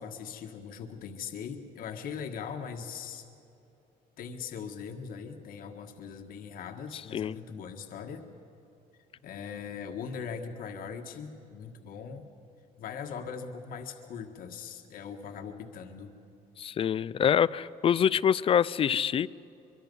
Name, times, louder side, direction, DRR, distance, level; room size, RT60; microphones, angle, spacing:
voice 1, 0.0-3.3 4.2-8.2 9.2-12.3 12.8-16.1, left 6 dB, 65° left, 4 dB, 1.6 m, -40 dB
voice 2, 16.6-19.3, left 8 dB, 35° left, 19 dB, 0.4 m, -25 dB
24.0 x 23.5 x 5.4 m, 2.8 s
cardioid pair, 130°, 16 cm